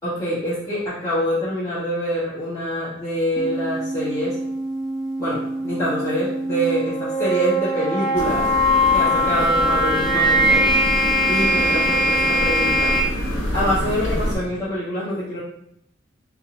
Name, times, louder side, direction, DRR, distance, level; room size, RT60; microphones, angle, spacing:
voice 1, 0.0-4.3 5.2-8.5 8.9-10.6 11.3-12.9 13.5-15.4, equal, 15° left, -13 dB, 1.6 m, -25 dB
sound 1, 3.4-13.0, equal, 5° right, 1.1 m, -21 dB
sound 2, 8.1-14.4, equal, 70° left, 1.2 m, -27 dB
4.2 x 3.7 x 2.3 m, 0.73 s
head